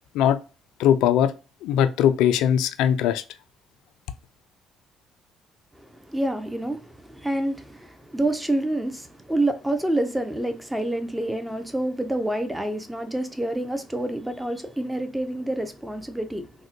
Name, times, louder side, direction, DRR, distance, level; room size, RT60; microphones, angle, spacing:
voice 1, 0.8-1.3 1.6-3.2, left 10 dB, 75° left, 0.3 m, -20 dB
voice 2, 5.8-16.5, right 1 dB, 10° right, 0.6 m, -28 dB
3.6 x 2.1 x 2.7 m
hypercardioid pair, 60°, 0 cm